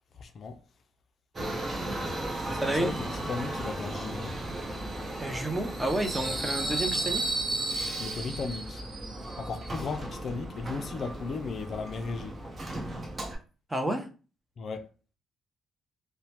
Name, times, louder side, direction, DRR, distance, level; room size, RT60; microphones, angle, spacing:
voice 1, 0.1-0.6 2.4-4.3 6.3-6.4 8.0-8.8 9.4-12.4 14.6-14.9, left 4 dB, 55° left, 0.4 m, -36 dB
Subway metro underground, 1.3-13.3, right 2 dB, 35° right, 0.9 m, -34 dB
voice 2, 2.6-2.9 5.2-7.2 13.7-14.1, right 1 dB, 15° right, 0.6 m, -30 dB
2.9 x 2.1 x 2.8 m
cardioid pair, 75°, 0 cm